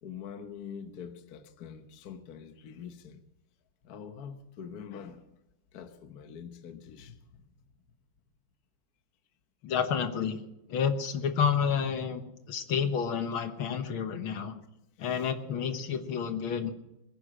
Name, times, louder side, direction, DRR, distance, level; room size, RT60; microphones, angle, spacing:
voice 1, 0.0-3.2 3.8-5.3 5.7-7.4 15.0-15.3, left 7 dB, 50° left, 1.4 m, -45 dB
voice 2, 9.6-10.4 10.7-12.2 12.5-14.6 15.0-16.7, left 7 dB, 70° left, 2.0 m, -29 dB
21.5 x 10.0 x 6.3 m
omnidirectional pair, 2.4 m